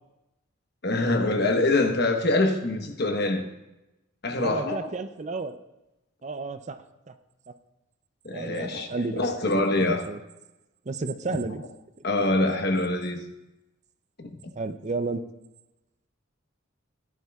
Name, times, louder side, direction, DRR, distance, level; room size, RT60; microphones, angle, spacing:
voice 1, 0.8-3.5 4.2-4.9 8.2-10.1 12.0-13.2 14.2-14.4, left 2 dB, 50° left, 1.1 m, -25 dB
voice 2, 4.4-5.6 6.2-6.8 7.1-7.2 8.3-9.2 9.8-10.2 10.9-11.6 14.6-15.2, right 3 dB, 35° right, 0.5 m, -32 dB
17.0 x 11.0 x 2.4 m
head